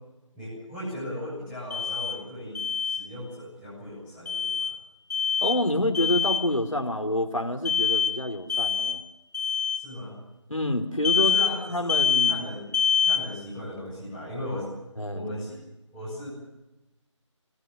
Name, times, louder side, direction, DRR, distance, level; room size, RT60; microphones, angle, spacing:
voice 1, 0.3-4.8 9.7-10.2 11.1-12.7 13.0-14.7 15.1-15.6 15.9-16.3, left 1 dB, 5° right, -10 dB, 6.9 m, -37 dB
Alarm, 1.7-2.2 2.5-3.0 4.3-4.7 5.1-5.6 5.9-6.4 7.6-8.1 8.5-9.0 9.3-9.8 11.0-11.5 11.9-12.4 12.7-13.2, left 7 dB, 35° left, 2.7 m, -24 dB
voice 2, 5.4-9.0 10.5-11.3 11.7-12.4 15.0-15.3, left 1 dB, 90° left, 5 dB, 3.7 m, -27 dB
26.0 x 18.0 x 6.8 m, 0.98 s
figure-of-eight pair, 165°, 16 cm